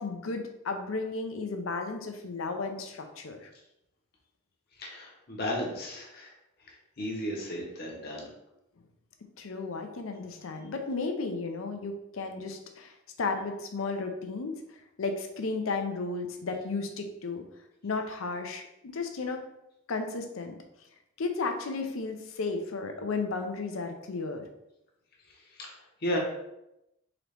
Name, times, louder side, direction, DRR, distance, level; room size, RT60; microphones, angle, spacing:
voice 1, 0.0-3.5 9.4-17.4 17.8-19.4 19.9-20.5 21.2-24.4, left 3 dB, 85° left, 5 dB, 0.6 m, -34 dB
voice 2, 4.7-6.3 6.6-8.3 25.3-26.2, equal, 50° left, -1 dB, 0.9 m, -35 dB
3.9 x 2.9 x 3.3 m, 0.87 s
head